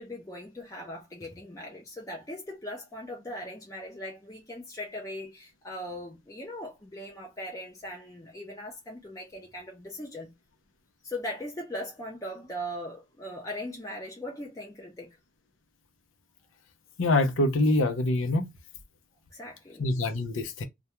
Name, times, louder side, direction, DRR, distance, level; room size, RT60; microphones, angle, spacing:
voice 1, 0.0-10.3 11.0-15.1 19.3-19.9, left 1 dB, 15° left, 0.5 m, -39 dB
voice 2, 17.0-18.5 19.8-20.6, left 2 dB, 90° left, 0.6 m, -25 dB
2.3 x 2.2 x 2.9 m
head